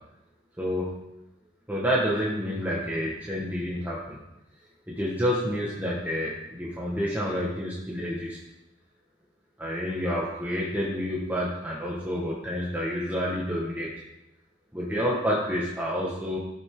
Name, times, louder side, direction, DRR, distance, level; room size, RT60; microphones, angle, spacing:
voice 1, 0.6-0.9 1.7-4.2 4.9-8.4 9.6-13.9 14.7-16.4, equal, 10° right, -5 dB, 1.5 m, -29 dB
16.5 x 6.5 x 3.8 m, 0.91 s
head